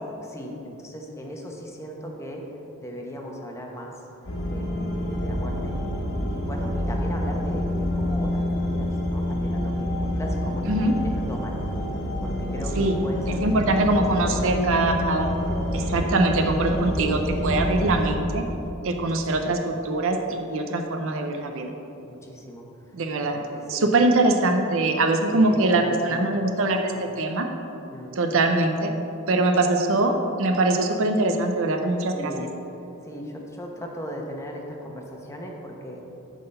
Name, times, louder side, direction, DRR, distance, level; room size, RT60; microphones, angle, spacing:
voice 1, 0.0-2.4 2.8-3.9 4.5-5.8 6.2-11.6 12.2-14.5 15.7-15.9 19.2-19.6 22.0-22.7 23.5-23.9 24.2-24.3 25.3-26.3 27.9-28.2 32.1-32.5 33.0-36.0, equal, 15° left, 0 dB, 1.0 m, -38 dB
sound 1, 4.2-18.1, left 1 dB, 85° left, 1.7 m, -27 dB
voice 2, 13.3-15.3 15.7-18.4 18.8-21.7 22.9-23.4 23.7-27.5 28.2-28.9 29.3-32.3, right 2 dB, 70° right, 5 dB, 0.6 m, -23 dB
9.5 x 3.9 x 6.6 m, 3.0 s
head